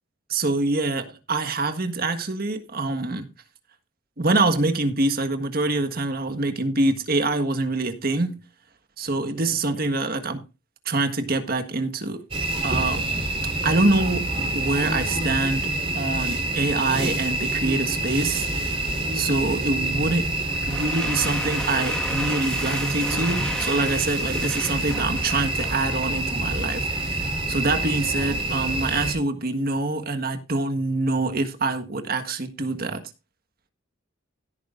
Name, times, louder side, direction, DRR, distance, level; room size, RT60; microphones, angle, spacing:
voice 1, 0.3-3.3 4.2-8.4 9.0-10.4 10.8-12.2 12.6-13.0 13.6-18.5 19.1-20.4 20.7-33.1, right 2 dB, 50° right, 1.6 m, -25 dB
sound 1, 12.3-29.1, right 2 dB, 30° right, 4.0 m, -27 dB
sound 2, 20.5-26.2, equal, 5° left, 1.7 m, -34 dB
16.5 x 9.4 x 2.6 m
head